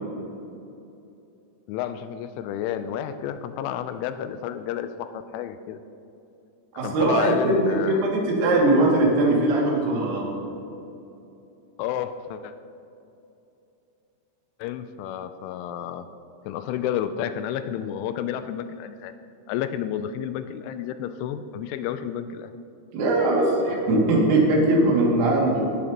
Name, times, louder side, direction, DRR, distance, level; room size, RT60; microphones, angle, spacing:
voice 1, 1.7-5.8 6.8-8.1 11.8-12.5 14.6-16.1 16.4-19.1 19.5-22.5, left 10 dB, 85° left, 10 dB, 2.9 m, -31 dB
voice 2, 6.8-10.2 22.9-25.6, right 2 dB, 85° right, -3 dB, 5.0 m, -20 dB
18.0 x 12.5 x 2.9 m, 2.8 s
omnidirectional pair, 5.7 m